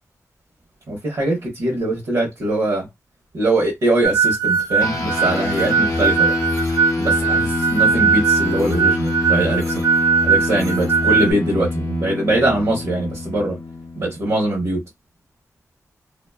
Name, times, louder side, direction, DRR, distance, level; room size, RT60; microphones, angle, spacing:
voice 1, 0.9-2.9 3.3-6.3 7.0-9.8 10.2-13.6 13.9-14.8, right 1 dB, 75° right, 0.8 m, -22 dB
sound 1, 4.0-11.3, right 6 dB, 55° right, 0.4 m, -19 dB
sound 2, 4.8-14.5, left 3 dB, 65° left, 0.5 m, -25 dB
2.5 x 2.2 x 2.3 m
wide cardioid pair, 75°, 6 cm